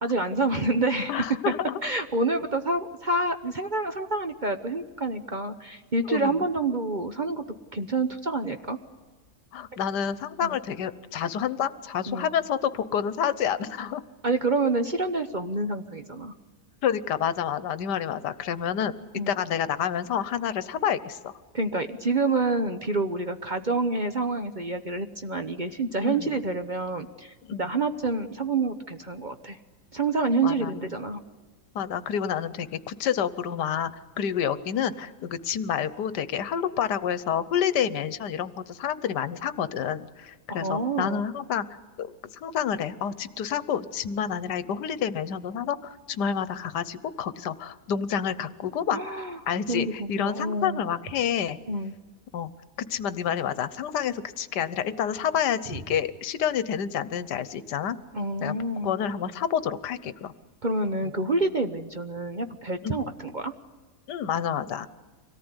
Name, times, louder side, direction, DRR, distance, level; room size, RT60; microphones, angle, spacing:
voice 1, 0.0-1.1 1.8-7.4 7.7-8.8 10.4-10.6 12.1-12.3 14.2-16.3 19.1-19.3 21.5-29.6 29.9-31.2 40.5-41.2 48.9-49.4 49.7-50.8 51.7-51.9 58.1-58.9 60.6-63.5, right 2 dB, 35° right, 7 dB, 0.9 m, -28 dB
voice 2, 1.1-1.8 6.1-6.3 9.5-14.0 16.8-19.0 19.3-21.3 26.0-26.3 27.5-27.7 30.4-30.7 31.7-33.9 34.2-41.6 42.0-42.1 42.4-51.6 52.3-52.5 52.8-58.0 58.4-58.5 58.8-60.3 62.8-63.0 64.1-64.9, left 8 dB, 80° left, 15 dB, 1.5 m, -28 dB
25.0 x 18.0 x 9.7 m, 1.4 s
omnidirectional pair, 1.8 m